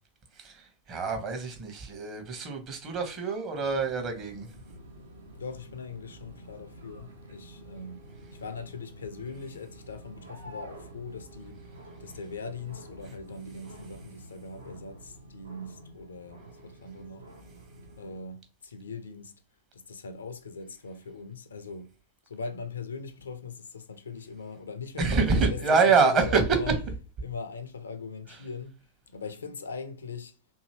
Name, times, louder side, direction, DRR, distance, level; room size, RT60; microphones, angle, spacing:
voice 1, 0.3-4.5 25.0-26.7 28.3-28.4, right 4 dB, 35° right, 0.8 m, -26 dB
sound 1, 3.6-18.2, right 1 dB, 70° right, 0.5 m, -49 dB
voice 2, 5.4-8.0 8.3-17.3 18.0-19.3 19.7-21.9 22.3-26.7 27.2-28.8 29.1-30.4, left 4 dB, 70° left, 0.4 m, -40 dB
2.7 x 2.6 x 2.9 m
figure-of-eight pair, 90°, 0 cm